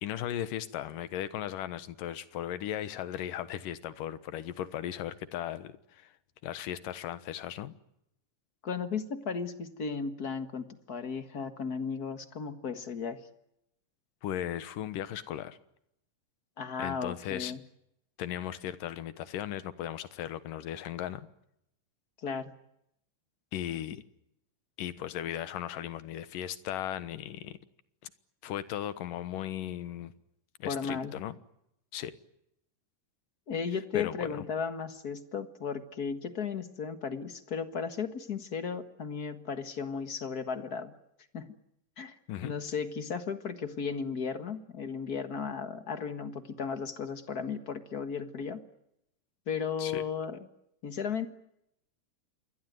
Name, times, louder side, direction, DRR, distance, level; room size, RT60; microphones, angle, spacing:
voice 1, 0.0-6.1 6.4-7.7 14.2-15.6 16.8-17.5 18.2-21.3 23.5-24.0 24.8-27.6 28.0-28.1 28.4-30.1 30.6-31.4 31.9-32.1 33.9-34.5 42.3-42.5 49.8-50.0, left 11 dB, 80° left, 14 dB, 2.9 m, -37 dB
voice 2, 8.6-13.2 16.6-17.6 22.2-22.5 30.6-31.1 33.5-40.9 41.3-41.5 42.0-42.2 42.4-48.6 49.5-50.4 50.8-51.3, left 6 dB, 45° left, 10 dB, 1.2 m, -35 dB
27.5 x 22.0 x 9.3 m, 0.80 s
omnidirectional pair, 3.9 m